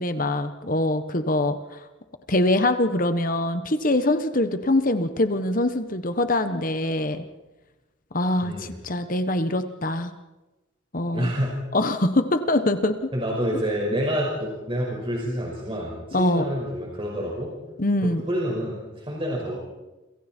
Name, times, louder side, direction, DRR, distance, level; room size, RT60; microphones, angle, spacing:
voice 1, 0.0-1.6 2.3-7.2 8.1-8.5 8.8-10.1 10.9-11.3 11.7-13.1 16.1-16.4 17.8-18.2, left 1 dB, 40° left, 9 dB, 1.3 m, -23 dB
voice 2, 8.4-8.7 11.1-11.6 13.1-17.5 18.0-19.6, equal, 25° right, -3 dB, 5.5 m, -28 dB
29.5 x 27.0 x 4.6 m, 1.1 s
head